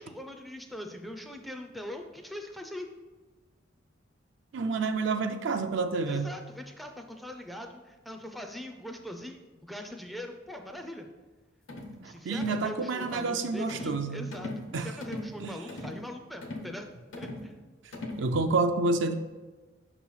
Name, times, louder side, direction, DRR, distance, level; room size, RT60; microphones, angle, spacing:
voice 1, 0.0-2.9 6.1-11.1 12.0-16.9 17.2-17.5, left 1 dB, ahead, 4 dB, 0.4 m, -41 dB
voice 2, 4.5-6.4 12.0-14.3 14.7-14.9 15.4-15.6 18.2-19.1, right 3 dB, 70° right, 8 dB, 0.4 m, -29 dB
sound 1, 11.7-12.0 12.3-12.6 13.0-13.3 13.7-14.0 14.3-14.7 15.0-15.3 15.7-16.0 16.4-16.7 17.1-17.5 17.9-18.3, left 1 dB, 85° left, 1.0 m, -39 dB
5.9 x 3.0 x 5.5 m, 1.3 s
head